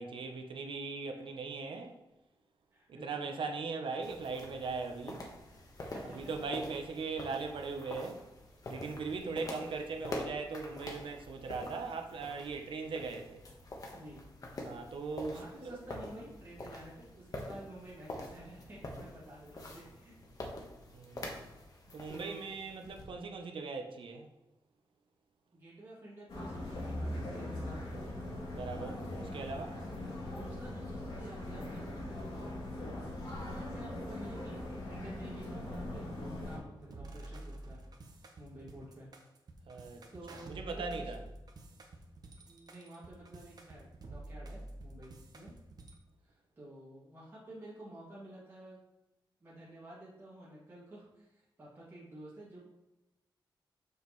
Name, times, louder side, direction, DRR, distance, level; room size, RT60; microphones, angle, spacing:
voice 1, 0.0-2.0 2.9-5.2 6.0-8.2 8.7-13.5 14.6-15.8 20.9-21.5 21.9-24.3 28.5-29.0 29.3-29.8 39.7-40.0 40.5-41.2, right 4 dB, 75° right, 0.8 m, -39 dB
voice 2, 2.7-3.4 5.8-6.3 8.9-9.8 13.9-14.2 15.2-20.2 22.1-22.5 25.5-28.0 30.2-32.5 33.1-36.0 36.4-37.8 38.4-39.1 39.8-41.1 42.4-45.6 46.2-48.8 49.4-52.6, right 1 dB, 25° right, 2.3 m, -51 dB
sound 1, 4.0-23.0, left 1 dB, 45° left, 1.3 m, -46 dB
sound 2, 26.3-36.6, left 1 dB, 70° left, 2.6 m, -40 dB
sound 3, 36.8-45.9, right 1 dB, 50° right, 1.0 m, -49 dB
7.2 x 6.3 x 3.1 m
wide cardioid pair, 155°, 9 cm